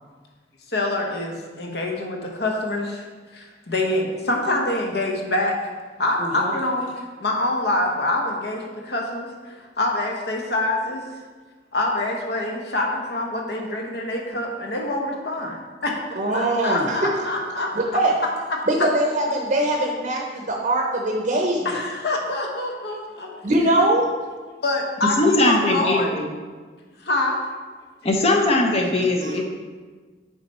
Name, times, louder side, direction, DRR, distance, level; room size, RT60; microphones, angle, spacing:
voice 1, 0.7-3.0 3.3-5.6 6.0-6.9 7.2-11.0 11.7-17.7 18.5-18.6 21.6-23.4 24.6-26.1 27.0-27.4, left 2 dB, 60° left, 0 dB, 1.0 m, -25 dB
voice 2, 6.2-6.5 16.1-17.3 17.7-18.2 18.7-21.8 23.4-24.1 29.2-29.4, right 1 dB, 40° right, 0 dB, 0.7 m, -22 dB
voice 3, 25.2-26.2 28.0-29.4, left 2 dB, 35° left, 1 dB, 0.7 m, -20 dB
7.1 x 4.1 x 4.3 m, 1.4 s
head